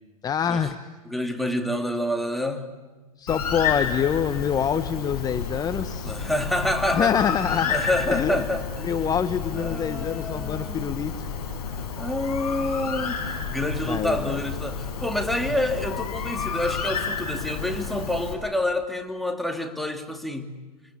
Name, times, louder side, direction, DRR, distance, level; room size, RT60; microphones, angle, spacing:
voice 1, 0.2-0.8 3.2-6.2 6.9-7.8 8.1-8.4 8.8-11.3 13.8-14.4, left 8 dB, 20° left, 1.1 m, -26 dB
voice 2, 1.0-2.7 6.0-7.1 7.5-8.9 9.5-11.0 11.7-20.6, left 1 dB, ahead, 2.6 m, -28 dB
Bird, 3.3-18.3, left 6 dB, 70° left, 7.1 m, -31 dB
28.5 x 24.5 x 8.5 m
hypercardioid pair, 110°, 20 cm